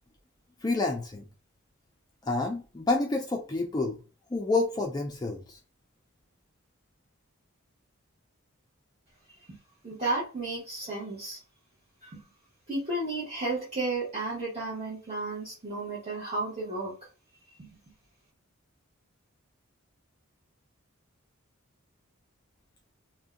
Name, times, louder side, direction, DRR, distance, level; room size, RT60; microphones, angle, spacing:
voice 1, 0.6-1.2 2.2-4.0 4.3-5.6, left 3 dB, 20° left, 1 dB, 0.3 m, -28 dB
voice 2, 9.8-11.4 12.0-12.2 12.7-16.9 17.6-17.7, right 2 dB, 30° right, -7 dB, 0.9 m, -33 dB
2.6 x 2.1 x 3.6 m, 0.35 s
head